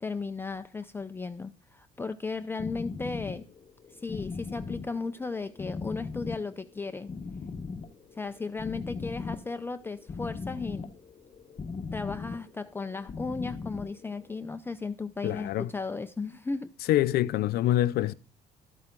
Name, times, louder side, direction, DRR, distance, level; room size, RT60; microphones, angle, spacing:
voice 1, 0.0-3.5 3.9-7.1 8.1-10.9 11.9-16.7, left 4 dB, 15° left, 0.5 m, -35 dB
sound 1, 2.6-14.4, left 4 dB, 30° left, 0.8 m, -39 dB
voice 2, 15.2-15.7 16.9-18.1, left 14 dB, 70° left, 0.5 m, -25 dB
12.5 x 8.7 x 3.7 m
cardioid pair, 110°, 17 cm